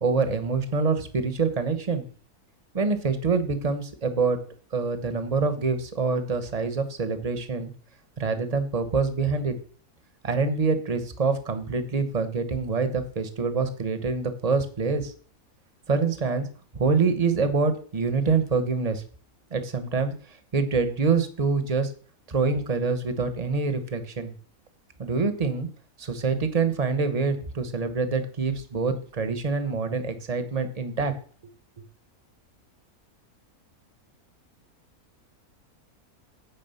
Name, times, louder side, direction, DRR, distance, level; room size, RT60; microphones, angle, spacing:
voice 1, 0.0-2.0 2.7-4.4 4.7-7.7 8.2-9.5 10.2-15.1 15.9-16.5 16.7-19.0 19.5-20.1 20.5-21.9 22.3-24.3 25.0-25.7 26.0-31.1, right 4 dB, 30° right, 9 dB, 1.1 m, -25 dB
9.4 x 4.9 x 6.9 m, 0.43 s
omnidirectional pair, 1.6 m